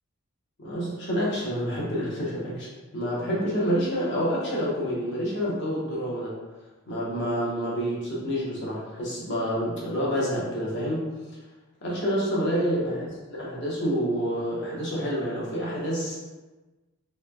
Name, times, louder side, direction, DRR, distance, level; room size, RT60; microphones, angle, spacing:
voice 1, 0.6-2.7 2.9-6.3 6.9-11.1 11.8-16.2, equal, 50° left, -6 dB, 0.9 m, -28 dB
3.1 x 3.0 x 2.3 m, 1.2 s
head